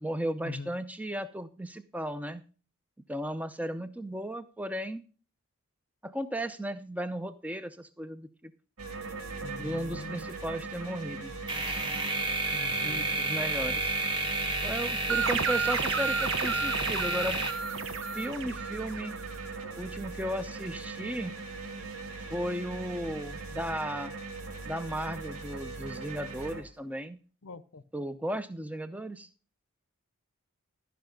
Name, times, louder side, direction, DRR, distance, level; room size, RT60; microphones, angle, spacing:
voice 1, 0.0-2.4 3.1-5.0 6.0-8.5 9.6-11.3 12.8-14.0 14.6-17.4 18.1-19.1 19.8-21.4 22.3-24.1 24.6-27.2 27.9-29.3, equal, 5° right, 11 dB, 0.5 m, -35 dB
sound 1, 8.8-26.6, right 3 dB, 85° right, 1.7 m, -40 dB
voice 2, 9.4-10.2 12.5-13.1 27.4-27.8, left 3 dB, 70° left, 16 dB, 0.6 m, -43 dB
sound 2, 11.5-18.3, right 2 dB, 20° right, 1.4 m, -31 dB
sound 3, 15.1-19.4, right 6 dB, 60° right, 0.7 m, -32 dB
13.5 x 5.7 x 5.2 m, 0.38 s
head